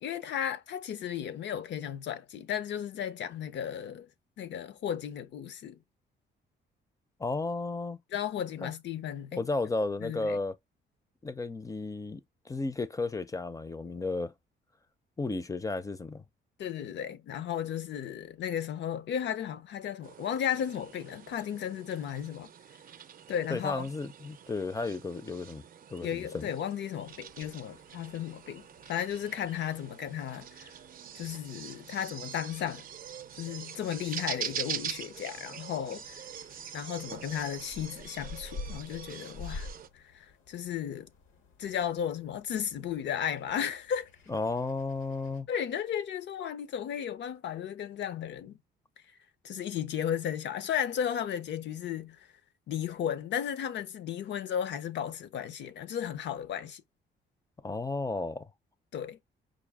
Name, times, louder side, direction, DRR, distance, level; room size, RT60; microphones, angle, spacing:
voice 1, 0.0-4.1 4.4-5.8 8.1-9.5 10.0-10.4 16.6-22.5 23.3-23.9 26.0-30.7 31.1-32.8 33.4-36.2 36.7-39.7 39.9-41.1 41.6-44.1 45.5-48.6 49.4-52.3 52.7-56.8 58.9-59.2, left 9 dB, 65° left, 0.6 m, -34 dB
voice 2, 7.2-8.0 8.6-8.7 9.4-10.6 11.2-12.2 12.5-14.3 15.2-16.2 23.5-25.6 25.9-26.5 44.3-45.5 57.6-58.5, left 3 dB, 15° left, 0.5 m, -33 dB
sound 1, 20.0-39.9, right 8 dB, 45° right, 0.6 m, -44 dB
sound 2, 27.1-45.4, left 3 dB, 80° left, 1.0 m, -50 dB
5.0 x 2.3 x 3.5 m
cardioid pair, 90°, 20 cm